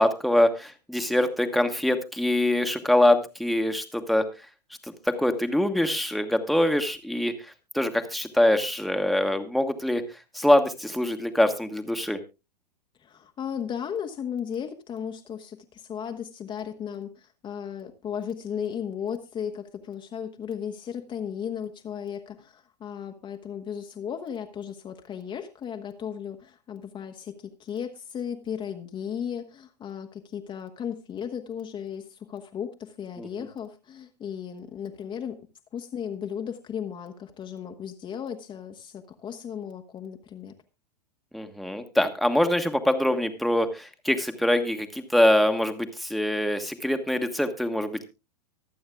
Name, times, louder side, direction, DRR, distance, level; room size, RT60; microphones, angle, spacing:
voice 1, 0.0-4.2 5.0-7.3 7.7-10.0 10.3-12.2 33.2-33.3 41.3-48.1, left 1 dB, ahead, 6 dB, 1.3 m, -24 dB
voice 2, 13.0-35.4 35.7-40.5, left 8 dB, 25° left, 5 dB, 1.1 m, -35 dB
24.5 x 8.6 x 2.3 m, 0.27 s
figure-of-eight pair, 100°, 21 cm